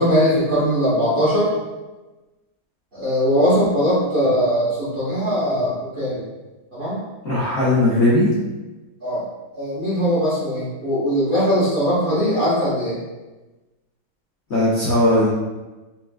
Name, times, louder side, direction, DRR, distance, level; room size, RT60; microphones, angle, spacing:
voice 1, 0.0-1.5 2.9-6.2 6.7-7.0 9.0-9.2 9.5-13.0, equal, 45° right, -11 dB, 0.7 m, -20 dB
voice 2, 7.2-8.3 14.5-15.3, left 1 dB, 80° left, -8 dB, 0.6 m, -17 dB
4.3 x 2.4 x 2.2 m, 1.1 s
omnidirectional pair, 2.2 m